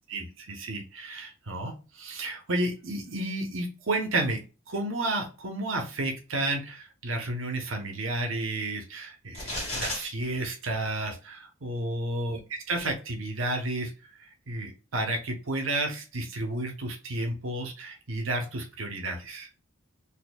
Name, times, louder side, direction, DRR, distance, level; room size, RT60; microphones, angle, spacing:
voice 1, 0.1-4.4 4.7-13.9 14.2-19.5, right 2 dB, 75° right, 3 dB, 0.9 m, -32 dB
sound 1, 9.3-10.0, left 1 dB, 30° left, 2.0 m, -32 dB
4.3 x 2.8 x 2.3 m, 0.32 s
head